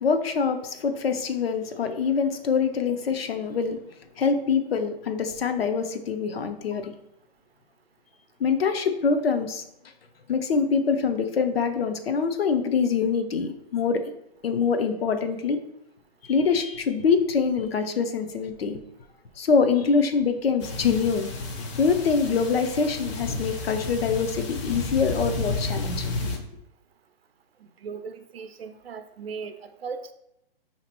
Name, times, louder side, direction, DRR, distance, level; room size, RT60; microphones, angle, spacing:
voice 1, 0.0-3.8 4.2-6.9 8.4-9.6 10.3-14.0 14.4-15.6 16.3-18.8 19.4-21.3 21.8-26.4, left 5 dB, 80° left, 8 dB, 0.7 m, -24 dB
sound 1, 20.6-26.4, left 3 dB, 30° left, 0.5 m, -32 dB
voice 2, 27.8-29.5 29.8-30.1, right 5 dB, 80° right, 8 dB, 0.5 m, -37 dB
5.2 x 2.8 x 2.9 m, 0.81 s
hypercardioid pair, 135°, 30 cm